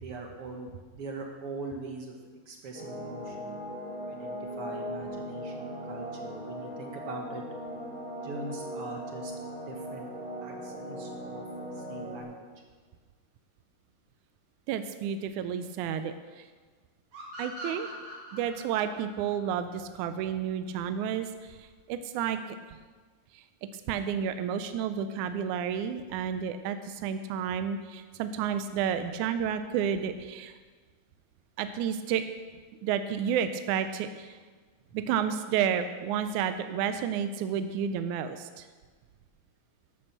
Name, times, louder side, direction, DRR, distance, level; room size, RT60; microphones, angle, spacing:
voice 1, 0.0-2.1 2.5-3.6 4.1-7.4 8.2-9.3 9.7-10.0 10.4-11.4 11.7-12.4, right 3 dB, 65° right, 2 dB, 1.5 m, -42 dB
sound 1, 2.7-12.2, equal, 10° right, 2.6 m, -39 dB
voice 2, 14.7-16.5 17.4-17.9 18.3-22.8 23.3-23.4 23.7-30.6 31.6-32.3 32.8-34.4 34.9-38.7, right 8 dB, 80° right, 9 dB, 1.8 m, -31 dB
sound 2, 17.1-20.5, equal, 45° right, 3.2 m, -43 dB
12.0 x 8.7 x 6.7 m, 1.5 s
omnidirectional pair, 3.9 m